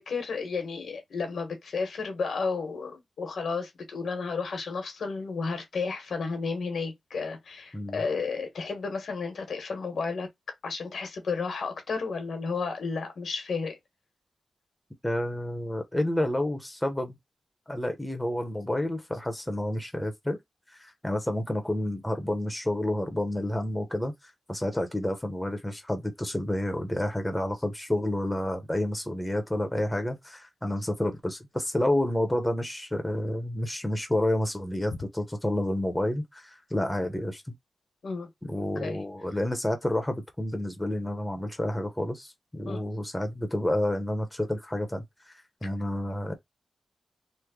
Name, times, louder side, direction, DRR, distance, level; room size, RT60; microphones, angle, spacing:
voice 1, 0.0-10.3 10.6-13.8 38.0-38.3 38.7-39.0 42.7-42.8, left 4 dB, 80° left, 1.0 m, -32 dB
voice 2, 15.0-17.2 17.7-20.4 20.7-37.4 38.4-45.3 45.6-46.3, left 1 dB, 10° left, 0.7 m, -29 dB
3.1 x 2.1 x 3.6 m
cardioid pair, 85°, 0 cm